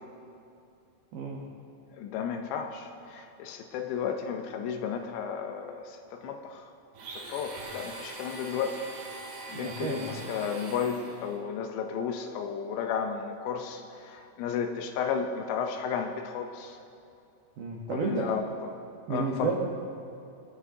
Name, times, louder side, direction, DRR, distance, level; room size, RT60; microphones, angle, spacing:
voice 1, 1.1-1.4 9.5-10.2 17.6-18.3 19.1-19.6, right 4 dB, 80° right, -1 dB, 2.0 m, -32 dB
voice 2, 2.0-6.6 7.1-8.8 9.5-16.8 17.9-18.7 19.1-19.6, left 7 dB, 80° left, 5 dB, 2.9 m, -33 dB
Domestic sounds home sounds, 6.9-11.4, right 3 dB, 65° right, 3.0 m, -42 dB
23.0 x 10.0 x 2.7 m, 2.7 s
omnidirectional pair, 5.4 m